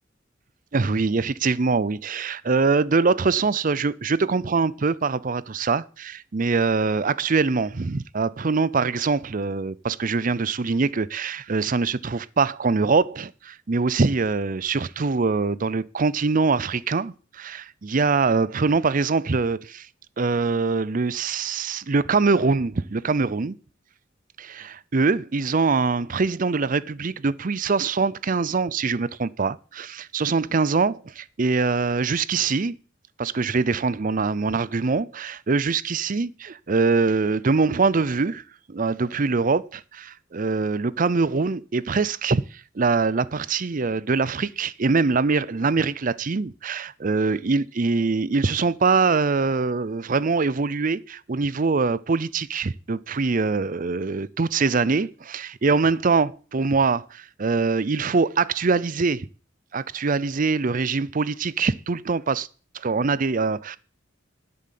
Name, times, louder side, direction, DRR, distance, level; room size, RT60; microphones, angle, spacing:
voice 1, 0.7-19.9 20.2-23.6 24.4-32.8 33.2-38.4 38.7-59.3 59.7-62.5 62.7-63.8, right 4 dB, 45° right, 0.6 m, -23 dB
11.0 x 7.9 x 7.5 m
head